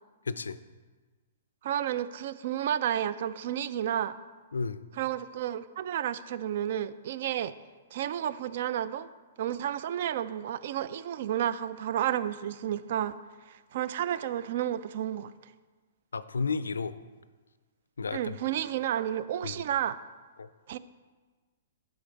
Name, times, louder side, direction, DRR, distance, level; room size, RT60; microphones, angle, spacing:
voice 1, 0.3-0.6 4.5-4.8 16.1-17.0 18.0-18.3 19.4-19.6 20.4-20.5, left 4 dB, 80° left, 0.4 m, -32 dB
voice 2, 1.6-4.1 5.0-7.5 7.9-9.1 9.4-13.2 13.5-15.3 18.1-20.0 20.7-20.8, right 10 dB, 55° right, 0.3 m, -31 dB
11.0 x 5.1 x 4.0 m
hypercardioid pair, 120°, 0 cm